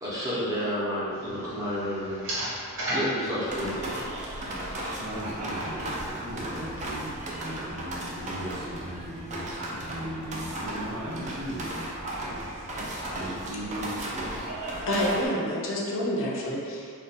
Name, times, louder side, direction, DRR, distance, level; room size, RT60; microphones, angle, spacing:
voice 1, 0.0-4.9, equal, 15° right, -10 dB, 0.8 m, -32 dB
sound 1, 1.1-6.9, equal, 60° right, 0.9 m, -37 dB
sound 2, 3.5-15.3, right 1 dB, 30° right, 0.4 m, -35 dB
voice 2, 4.7-12.4 13.1-14.5, right 1 dB, 85° right, -6 dB, 0.7 m, -38 dB
voice 3, 14.9-16.9, equal, 60° left, -3 dB, 0.6 m, -28 dB
2.5 x 2.2 x 4.0 m, 2.4 s
head